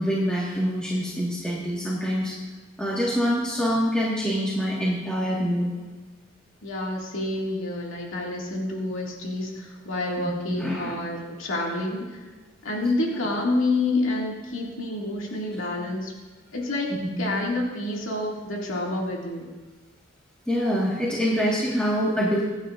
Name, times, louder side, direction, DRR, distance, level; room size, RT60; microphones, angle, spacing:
voice 1, 0.0-2.3 2.8-5.7 10.2-10.9 13.1-13.2 17.1-17.4 20.5-22.4, equal, 5° left, -7 dB, 1.6 m, -25 dB
voice 2, 6.6-12.2 12.6-16.1 16.5-19.5, left 2 dB, 80° left, -2 dB, 2.2 m, -28 dB
24.5 x 9.0 x 2.5 m, 1.3 s
head